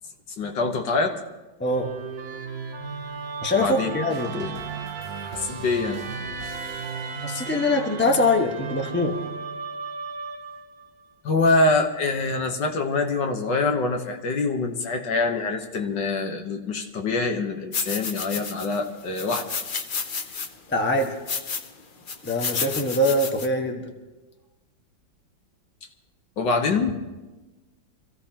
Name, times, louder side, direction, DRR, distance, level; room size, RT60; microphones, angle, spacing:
voice 1, 0.4-1.2 3.5-3.9 4.3-4.5 5.2-6.0 11.2-19.5 26.4-26.9, left 3 dB, 70° left, 4 dB, 1.8 m, -25 dB
voice 2, 1.6-1.9 3.4-4.5 7.2-9.1 20.7-21.1 22.2-23.8, left 2 dB, 5° left, 2 dB, 1.0 m, -23 dB
Musical instrument, 1.6-10.9, right 5 dB, 55° right, 1.4 m, -35 dB
sound 1, 4.1-8.0, right 4 dB, 90° right, 1.9 m, -41 dB
sound 2, 17.7-18.8 19.2-20.5 21.0-21.7 22.1-23.5, left 5 dB, 90° left, 0.4 m, -31 dB
26.5 x 15.5 x 2.9 m, 1.2 s
omnidirectional pair, 2.1 m